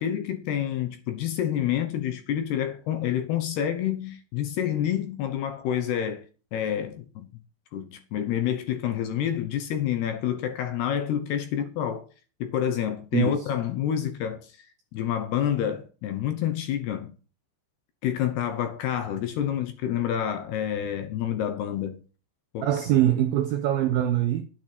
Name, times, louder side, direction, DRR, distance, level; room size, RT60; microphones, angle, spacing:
voice 1, 0.0-6.2 6.5-7.3 7.7-12.0 12.4-14.6 14.9-17.1 18.0-22.0 22.5-22.7, left 10 dB, 70° left, 2.7 m, -28 dB
voice 2, 13.1-13.5 22.6-24.4, right 12 dB, 80° right, 2.2 m, -23 dB
12.5 x 8.6 x 6.0 m
omnidirectional pair, 5.8 m